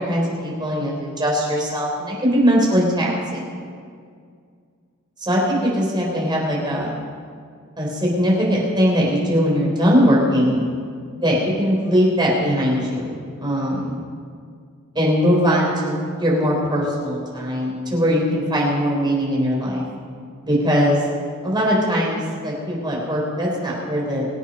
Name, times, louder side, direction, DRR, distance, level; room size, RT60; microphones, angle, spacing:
voice 1, 0.0-3.4 5.2-6.9 7.8-10.7 11.1-14.0 14.9-19.8 20.4-21.0 21.4-24.3, equal, 20° right, -3 dB, 4.1 m, -20 dB
24.5 x 8.2 x 5.5 m, 2.1 s
head